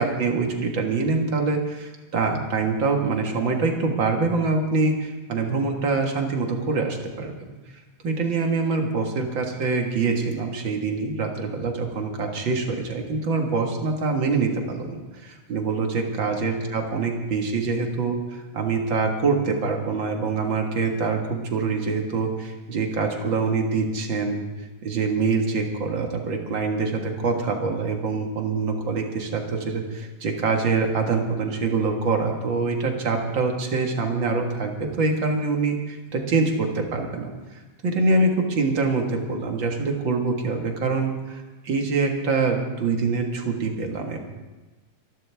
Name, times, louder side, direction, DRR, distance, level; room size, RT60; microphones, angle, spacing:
voice 1, 0.0-7.5 8.0-24.4 24.8-37.3 37.8-44.2, right 4 dB, 45° right, 2 dB, 2.1 m, -25 dB
25.0 x 12.0 x 3.5 m, 1.2 s
omnidirectional pair, 3.6 m